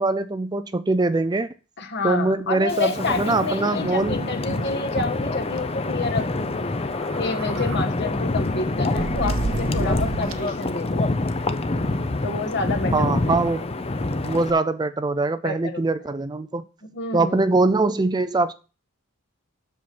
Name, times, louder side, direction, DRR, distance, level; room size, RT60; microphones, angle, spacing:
voice 1, 0.0-1.5 2.0-4.2 12.9-13.7 14.2-16.6 17.1-18.5, right 3 dB, 20° right, 0.4 m, -22 dB
voice 2, 1.8-6.8 7.2-11.1 12.2-13.2 15.4-15.8 16.9-17.5, left 3 dB, 55° left, 1.6 m, -29 dB
Wind, 2.7-14.5, left 2 dB, 30° left, 0.6 m, -26 dB
sound 1, 3.7-4.7 5.0-5.1 5.4-5.6 6.8-7.8 8.4-10.6, right 3 dB, 70° right, 0.8 m, -31 dB
7.6 x 6.9 x 5.9 m
head